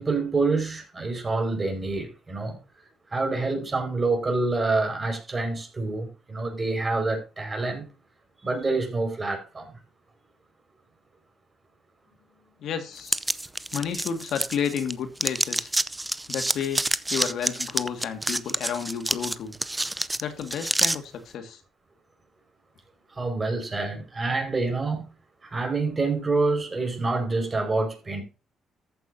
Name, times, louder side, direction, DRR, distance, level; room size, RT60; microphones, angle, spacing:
voice 1, 0.0-2.6 3.1-7.9 8.4-9.7 23.1-25.1 25.4-28.2, right 3 dB, 30° right, 5.1 m, -27 dB
voice 2, 12.6-13.2 13.7-15.7 16.3-19.6 20.2-21.6, left 7 dB, 75° left, 1.9 m, -31 dB
sound 1, 13.1-14.9 15.2-21.0, right 1 dB, 10° right, 0.6 m, -27 dB
14.0 x 9.1 x 2.7 m
cardioid pair, 90°, 0 cm